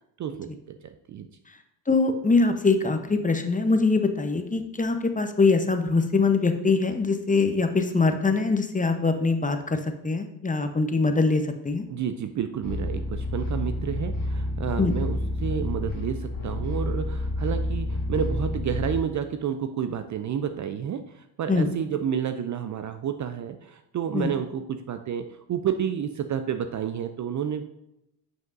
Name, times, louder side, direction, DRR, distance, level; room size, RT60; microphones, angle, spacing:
voice 1, 0.2-1.3 11.9-27.6, right 8 dB, 35° right, 8 dB, 0.5 m, -30 dB
voice 2, 1.9-11.8 14.8-15.0 21.5-21.7 24.1-24.3, left 3 dB, 15° left, 7 dB, 0.8 m, -23 dB
sound 1, 12.6-19.0, left 1 dB, 70° left, 2.5 m, -29 dB
9.1 x 5.3 x 2.6 m, 0.83 s
hypercardioid pair, 60°, 50 cm